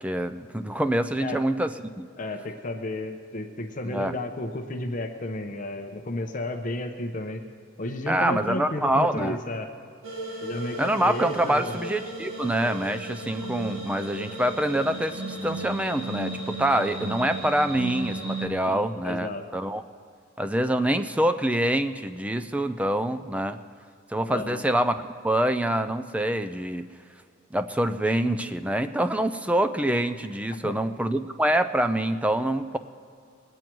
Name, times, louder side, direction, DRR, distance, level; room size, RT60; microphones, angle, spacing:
voice 1, 0.0-2.1 3.9-4.2 8.1-9.4 10.8-19.8 20.4-23.6 24.1-24.9 25.2-26.9 27.5-32.8, right 1 dB, 5° right, 9 dB, 0.4 m, -25 dB
voice 2, 2.2-7.4 7.8-9.7 10.4-11.8 18.7-19.5 24.3-24.6 30.6-30.8, left 1 dB, 40° left, 4 dB, 0.8 m, -33 dB
sound 1, 10.0-18.5, right 2 dB, 85° right, 1.8 m, -35 dB
20.5 x 9.1 x 4.6 m, 2.3 s
head